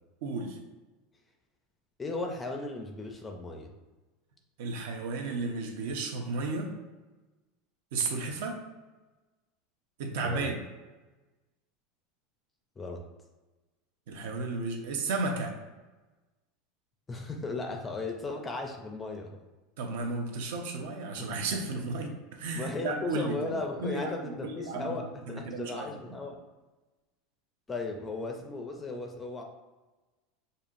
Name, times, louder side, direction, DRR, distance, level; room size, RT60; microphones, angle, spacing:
voice 1, 0.2-0.6 4.6-6.8 7.9-8.6 10.0-10.6 14.1-15.6 19.8-24.9 25.3-26.2, right 3 dB, 70° right, 3 dB, 0.8 m, -33 dB
voice 2, 2.0-3.7 10.2-10.5 12.8-13.0 17.1-19.3 21.2-21.4 21.7-21.8 22.5-26.4 27.7-29.4, left 3 dB, 10° left, 3 dB, 0.4 m, -36 dB
6.7 x 2.7 x 2.5 m, 1.2 s
supercardioid pair, 170°, 0 cm